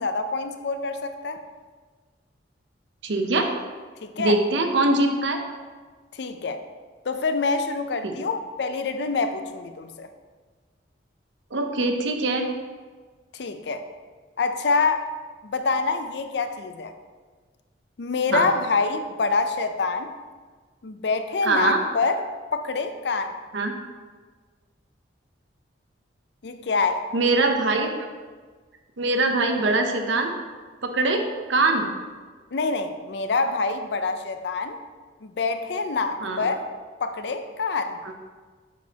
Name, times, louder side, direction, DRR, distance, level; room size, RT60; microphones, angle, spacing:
voice 1, 0.0-1.4 4.0-4.4 6.1-6.6 7.1-10.1 13.3-13.8 14.4-15.1 15.4-16.9 18.0-20.1 20.8-22.2 22.5-23.3 26.4-27.0 32.5-34.8 35.2-36.6 37.0-38.0, left 4 dB, 60° left, 8 dB, 0.4 m, -26 dB
voice 2, 3.0-3.5 4.2-5.4 8.0-8.1 11.5-12.5 18.3-18.5 21.4-21.8 23.5-23.7 27.1-27.9 29.0-30.3 30.8-31.2 31.5-31.9 36.2-36.5, right 2 dB, 75° right, 4 dB, 0.7 m, -22 dB
7.2 x 6.1 x 2.8 m, 1.5 s
head